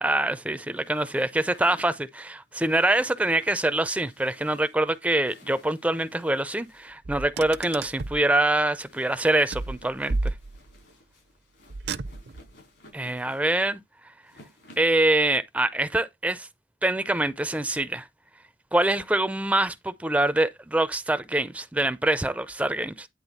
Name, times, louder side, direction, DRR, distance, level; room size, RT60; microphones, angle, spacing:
voice 1, 0.0-10.3 12.9-13.8 14.8-16.5 16.8-18.1 18.7-23.1, right 1 dB, 10° right, 0.4 m, -25 dB
sound 1, 0.7-15.0, left 1 dB, 75° left, 4.6 m, -56 dB
Car, 7.0-8.3 9.5-10.8 11.7-12.5, right 3 dB, 65° right, 0.6 m, -32 dB
9.9 x 3.7 x 4.1 m
head